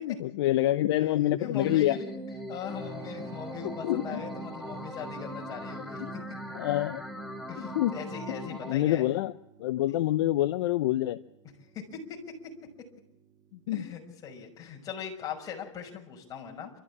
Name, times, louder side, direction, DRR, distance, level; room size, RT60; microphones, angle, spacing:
voice 1, 0.0-2.0 3.6-4.2 6.0-6.1 6.5-7.0 7.7-7.9 8.3-9.3 9.6-11.2 13.7-13.8, left 14 dB, 50° left, 11 dB, 0.9 m, -27 dB
voice 2, 1.4-2.1 2.5-6.2 7.5-9.1 11.7-12.5 13.7-16.7, left 7 dB, 20° left, 1 dB, 5.9 m, -40 dB
sound 1, 1.6-8.7, equal, ahead, 1.5 m, -40 dB
Keyboard (musical), 2.7-15.1, right 5 dB, 25° right, 2.3 m, -52 dB
28.5 x 14.0 x 8.6 m, 0.80 s
hypercardioid pair, 130°, 16 cm